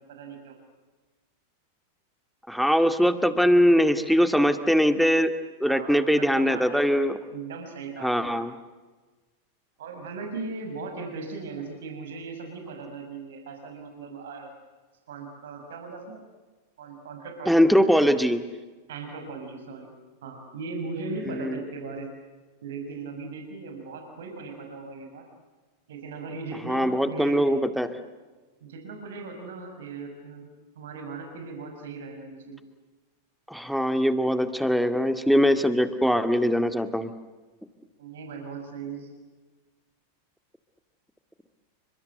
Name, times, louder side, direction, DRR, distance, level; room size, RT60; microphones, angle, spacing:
voice 1, 0.1-0.6 5.7-7.0 7.3-8.3 9.8-14.5 15.1-16.2 16.8-17.5 18.9-19.9 20.2-22.1 22.6-25.2 25.9-27.5 28.6-30.5 30.8-32.6 38.0-39.1, right 4 dB, 60° right, 4 dB, 6.0 m, -38 dB
voice 2, 2.5-5.3 5.6-7.2 8.0-8.5 17.5-18.4 21.3-21.6 26.7-27.9 33.5-37.1, equal, ahead, 9 dB, 2.1 m, -22 dB
30.0 x 25.0 x 8.0 m, 1.3 s
figure-of-eight pair, 90°, 0 cm